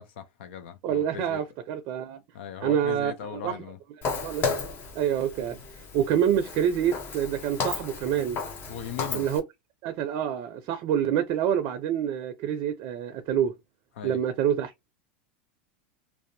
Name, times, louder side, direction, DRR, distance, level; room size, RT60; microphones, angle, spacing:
voice 1, 0.0-1.4 2.3-3.8 8.7-9.3 14.0-14.2, left 8 dB, 75° left, 0.5 m, -39 dB
voice 2, 0.8-2.2 2.6-3.6 4.2-4.5 4.9-5.6 5.9-8.4 9.1-9.4 9.8-13.6 14.0-14.7, right 9 dB, 55° right, 0.4 m, -27 dB
Walk footsteps, 4.0-9.4, left 4 dB, 35° left, 0.7 m, -34 dB
2.6 x 2.0 x 2.6 m
hypercardioid pair, 110°, 6 cm